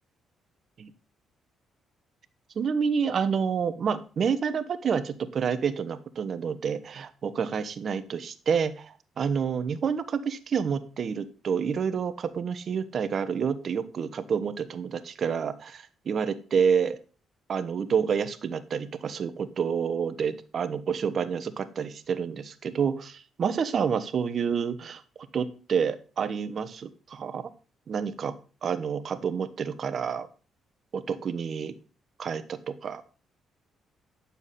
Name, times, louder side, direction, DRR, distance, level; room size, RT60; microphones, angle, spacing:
voice 1, 2.5-17.0 17.5-25.0 25.3-27.5 27.9-28.3 28.6-30.3 30.9-31.7 32.2-33.0, right 6 dB, 55° right, 11 dB, 1.1 m, -28 dB
11.0 x 7.1 x 4.2 m, 0.36 s
cardioid pair, 90°, 0 cm